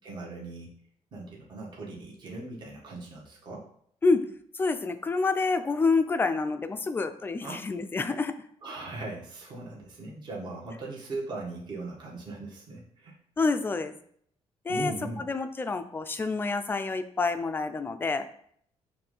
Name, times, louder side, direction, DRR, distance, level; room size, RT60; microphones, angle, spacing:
voice 1, 0.0-0.8 1.1-3.7 7.4-7.6 8.6-13.2 14.7-15.3, right 2 dB, 40° right, -3 dB, 1.6 m, -39 dB
voice 2, 4.5-8.3 13.4-13.9 14.6-14.9 15.3-18.3, left 3 dB, 20° left, 9 dB, 0.5 m, -27 dB
5.8 x 3.3 x 5.4 m, 0.64 s
cardioid pair, 140°, 11 cm